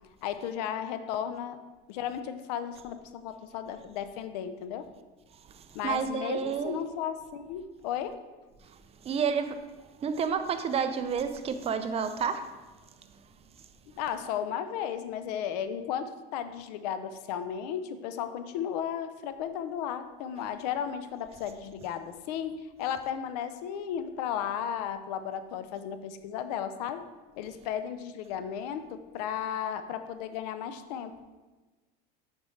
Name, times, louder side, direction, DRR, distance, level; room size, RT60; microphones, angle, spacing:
voice 1, 0.2-1.6 1.9-4.9 5.7-8.2 14.0-27.0 27.4-31.1, left 9 dB, 90° left, 10 dB, 0.6 m, -34 dB
voice 2, 5.5-6.8 8.7-9.6 10.0-12.5, right 6 dB, 30° right, 9 dB, 0.5 m, -30 dB
7.3 x 5.2 x 3.2 m, 1.2 s
supercardioid pair, 120°, 20 cm